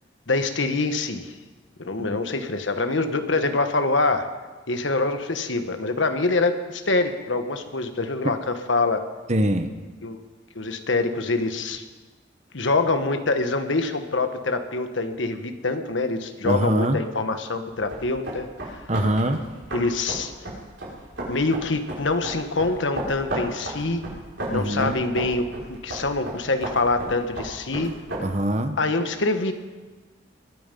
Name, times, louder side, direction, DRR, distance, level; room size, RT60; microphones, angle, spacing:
voice 1, 0.3-1.3 1.8-4.3 4.7-9.0 10.0-10.2 10.5-11.8 12.5-18.8 19.7-20.3 21.3-24.0 24.5-27.9 28.8-29.5, left 3 dB, 75° left, 7 dB, 1.3 m, -25 dB
voice 2, 9.3-9.7 16.4-17.0 18.9-19.4 24.5-25.0 28.2-28.8, right 1 dB, 35° right, 8 dB, 1.0 m, -23 dB
sound 1, 17.7-28.2, right 1 dB, 75° right, 5.4 m, -34 dB
22.5 x 9.1 x 5.4 m, 1.3 s
head